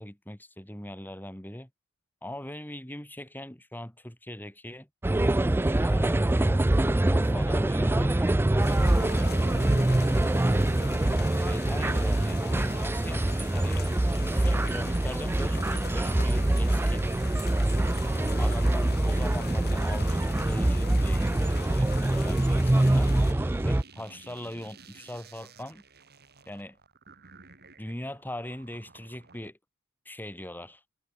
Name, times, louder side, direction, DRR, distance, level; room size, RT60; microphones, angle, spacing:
voice 1, 0.0-1.7 2.2-4.9 5.8-6.6 7.0-9.3 11.3-17.0 18.4-23.1 23.6-25.8 26.5-26.8 27.8-29.6 30.0-30.8, left 1 dB, 10° left, 3.1 m, -40 dB
sound 1, 5.0-23.8, right 1 dB, 10° right, 0.3 m, -24 dB
sound 2, 8.6-23.3, left 5 dB, 45° left, 7.6 m, -43 dB
sound 3, 17.6-29.5, right 3 dB, 50° right, 7.7 m, -53 dB
head